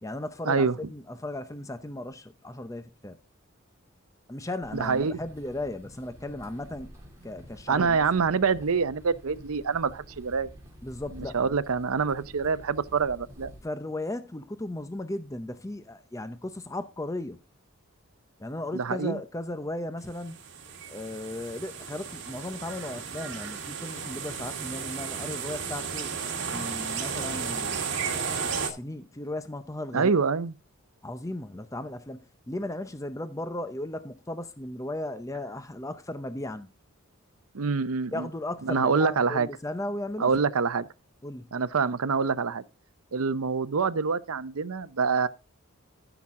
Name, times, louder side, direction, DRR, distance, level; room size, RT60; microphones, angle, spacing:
voice 1, 0.0-3.2 4.3-6.9 7.2-8.0 10.8-11.5 13.6-17.4 18.4-20.4 20.9-26.1 26.5-28.0 28.5-30.1 31.0-36.7 38.1-40.4 41.2-41.5, left 1 dB, 15° left, 0.6 m, -36 dB
sound 1, 4.6-13.6, equal, 15° right, 2.6 m, -49 dB
voice 2, 4.7-5.2 7.7-10.5 11.1-13.5 18.7-19.2 29.9-30.5 37.5-38.3 38.6-39.5 40.2-40.9 41.5-42.6 43.1-45.3, right 5 dB, 75° right, 0.6 m, -26 dB
sound 2, 20.1-28.7, right 6 dB, 55° right, 1.9 m, -34 dB
14.0 x 6.0 x 3.6 m
head